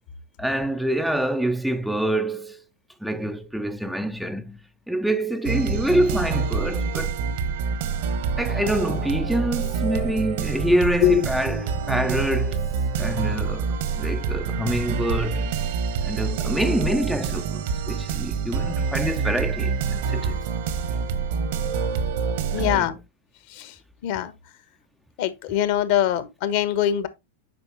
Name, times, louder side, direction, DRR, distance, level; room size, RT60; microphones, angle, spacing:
voice 1, 0.4-2.6 3.0-4.6 4.9-7.2 8.4-12.6 13.0-15.6 16.0-20.4 22.6-22.9, right 1 dB, ahead, 0.6 m, -26 dB
sound 1, 5.4-22.8, right 6 dB, 55° right, 1.2 m, -26 dB
voice 2, 22.5-23.0 23.5-23.8 24.0-24.3 25.2-27.1, left 11 dB, 50° left, 1.3 m, -23 dB
9.1 x 5.4 x 3.0 m
figure-of-eight pair, 90°, 0 cm